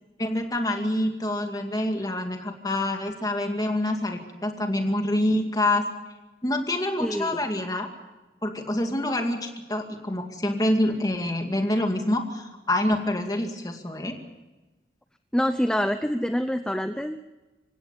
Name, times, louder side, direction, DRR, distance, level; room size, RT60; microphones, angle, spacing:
voice 1, 0.2-5.8 6.4-7.9 8.4-14.1, left 1 dB, 20° left, 4 dB, 2.3 m, -26 dB
voice 2, 7.0-7.3 15.3-17.3, equal, 5° left, 9 dB, 0.6 m, -26 dB
26.5 x 16.5 x 6.9 m, 1.1 s
head